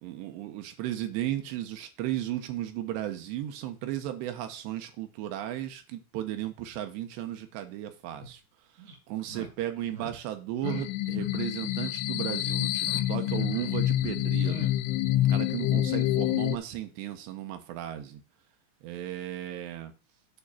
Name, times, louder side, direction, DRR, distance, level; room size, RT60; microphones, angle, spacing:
voice 1, 0.0-8.4 9.1-14.7 15.3-18.2 18.8-19.9, right 12 dB, 75° right, 2.9 m, -35 dB
sound 1, 8.2-8.3 8.8-9.0 9.3-9.5 9.9-10.1 10.6-10.8 11.1-11.4 11.7-12.3 12.7-13.0 13.3-13.7 14.0-14.7, equal, 40° right, 2.8 m, -42 dB
sound 2, 10.6-16.6, left 14 dB, 85° left, 2.9 m, -27 dB
9.0 x 3.7 x 7.0 m
omnidirectional pair, 5.5 m